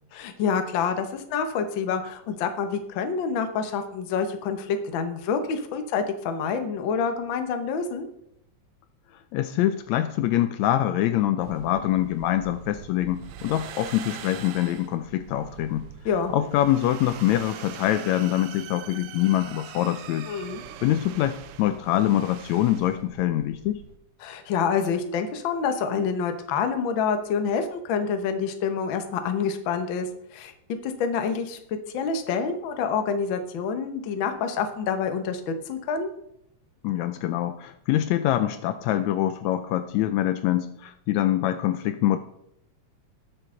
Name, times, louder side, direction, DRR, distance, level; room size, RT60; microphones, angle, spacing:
voice 1, 0.1-8.1 16.0-16.3 20.3-20.6 24.2-30.5 30.8-36.1, left 6 dB, 60° left, 7 dB, 1.3 m, -27 dB
voice 2, 9.3-15.9 16.3-20.3 20.8-23.8 36.8-42.2, left 13 dB, 80° left, 10 dB, 1.8 m, -24 dB
sound 1, 11.4-24.0, right 10 dB, 90° right, 1.2 m, -43 dB
19.5 x 6.6 x 3.8 m, 0.79 s
omnidirectional pair, 3.4 m